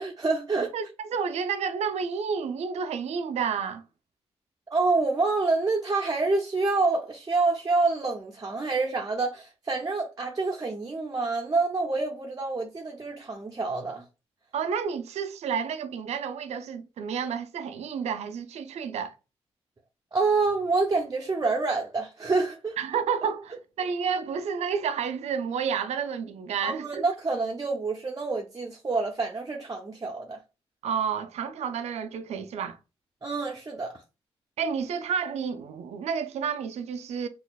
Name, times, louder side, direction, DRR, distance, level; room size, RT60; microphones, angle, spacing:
voice 1, 0.0-0.7 4.7-14.1 20.1-22.8 26.6-30.4 33.2-33.9, right 3 dB, 35° right, 0.6 m, -27 dB
voice 2, 0.7-3.8 14.5-19.1 22.8-27.0 30.8-32.8 34.6-37.3, right 6 dB, 80° right, 0.4 m, -30 dB
4.1 x 2.4 x 2.3 m
supercardioid pair, 50°, 11 cm